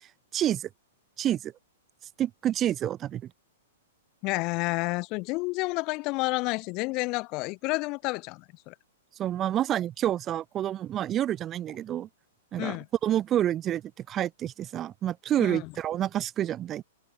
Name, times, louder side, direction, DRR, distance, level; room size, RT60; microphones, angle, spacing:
voice 1, 0.3-0.7 1.2-1.5 2.2-3.3 9.2-12.1 12.5-16.8, right 11 dB, 20° right, 4.6 m, -28 dB
voice 2, 4.2-8.7 12.6-12.9 15.4-15.7, left 25 dB, 35° left, 4.6 m, -30 dB
hypercardioid pair, 150°, 0 cm